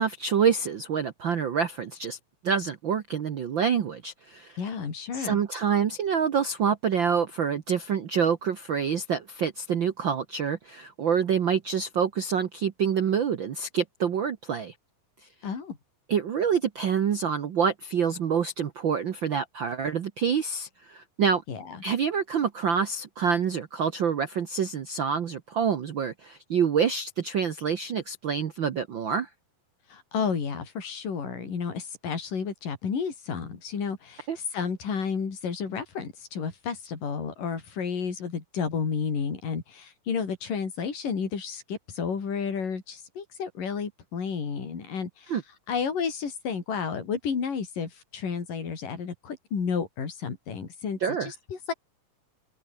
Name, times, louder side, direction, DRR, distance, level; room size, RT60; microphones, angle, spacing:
voice 1, 0.0-2.2 2.4-4.6 5.1-14.7 16.1-21.4 21.8-29.3 34.3-34.4 45.3-45.4 51.0-51.3, right 7 dB, 80° right, 1.0 m, -27 dB
voice 2, 4.6-5.4 15.4-15.8 21.5-21.8 29.9-45.4 45.7-51.7, left 6 dB, 70° left, 6.0 m, -31 dB
omnidirectional pair, 4.0 m